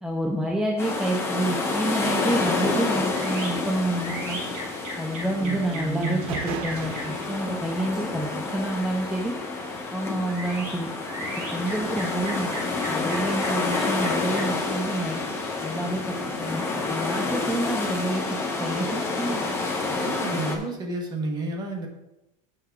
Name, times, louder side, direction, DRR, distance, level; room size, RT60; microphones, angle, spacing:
voice 1, 0.0-4.4 5.0-9.3 9.9-10.9 11.4-15.2 15.6-19.5, right 1 dB, ahead, -1 dB, 0.5 m, -29 dB
sound 1, 0.8-20.6, left 3 dB, 15° left, 1.0 m, -29 dB
sound 2, 3.0-16.3, right 1 dB, 45° right, 2.6 m, -40 dB
voice 2, 5.2-6.2 19.9-21.9, right 3 dB, 25° right, 2 dB, 1.2 m, -31 dB
sound 3, 5.8-5.9 6.2-9.7, right 5 dB, 80° right, 1.2 m, -38 dB
7.5 x 5.9 x 4.6 m, 0.92 s
cardioid pair, 165°, 19 cm